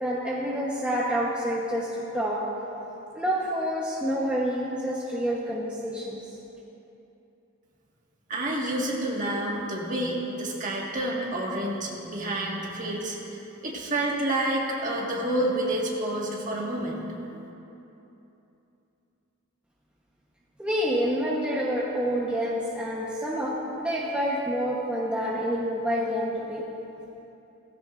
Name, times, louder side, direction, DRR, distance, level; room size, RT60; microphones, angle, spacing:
voice 1, 0.0-2.4 3.1-6.2 20.6-26.6, equal, 5° right, -6 dB, 1.0 m, -28 dB
voice 2, 8.3-17.0, right 1 dB, 35° right, -3 dB, 1.7 m, -29 dB
17.0 x 15.0 x 2.5 m, 3.0 s
head